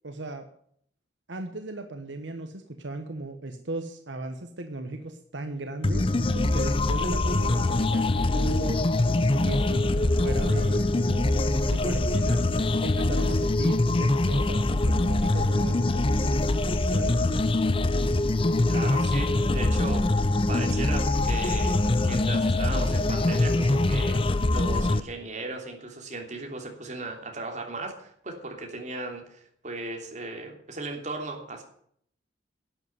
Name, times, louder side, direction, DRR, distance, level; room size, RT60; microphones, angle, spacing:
voice 1, 0.0-0.4 1.3-8.8 9.3-12.4 12.8-17.1, right 2 dB, 75° right, 7 dB, 1.2 m, -37 dB
sound 1, 5.8-25.0, left 2 dB, 30° left, 0.6 m, -24 dB
voice 2, 18.7-21.7 22.0-31.6, right 2 dB, 40° right, 2 dB, 3.1 m, -37 dB
11.5 x 8.1 x 9.6 m, 0.65 s
head